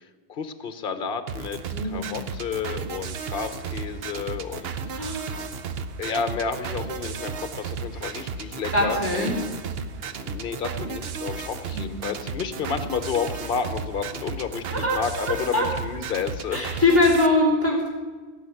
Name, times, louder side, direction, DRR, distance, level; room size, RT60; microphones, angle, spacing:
voice 1, 0.0-5.0 6.0-9.4 10.2-16.8, left 6 dB, 55° left, 10 dB, 1.1 m, -31 dB
sound 1, 1.3-17.3, right 5 dB, 65° right, 1.0 m, -34 dB
voice 2, 1.7-2.1 4.9-5.3 8.0-8.2 8.7-9.3 11.7-12.0 14.7-15.0 15.2-15.7 16.5-17.9, left 2 dB, 10° left, -3 dB, 3.5 m, -23 dB
16.5 x 5.8 x 9.3 m, 1.4 s
omnidirectional pair, 1.1 m